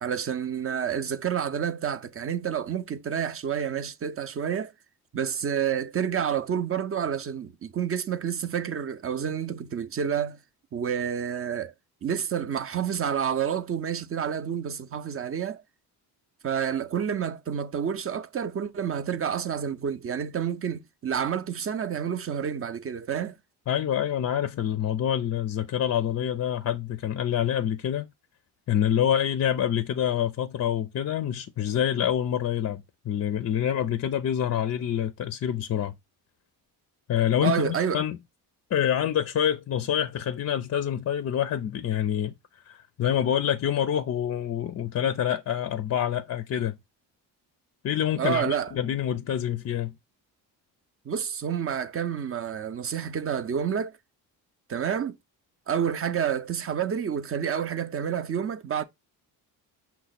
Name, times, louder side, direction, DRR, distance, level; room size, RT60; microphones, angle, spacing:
voice 1, 0.0-4.7 5.1-10.4 10.7-11.7 12.0-15.6 16.4-23.4 37.4-38.0 48.2-48.7 51.1-54.0 54.7-55.2 55.7-58.8, right 8 dB, 35° right, 0.6 m, -29 dB
voice 2, 23.7-28.1 28.7-35.9 37.1-38.2 38.7-42.3 42.7-46.8 47.8-49.9, left 10 dB, 40° left, 0.4 m, -26 dB
5.7 x 2.2 x 4.0 m
cardioid pair, 80°, 41 cm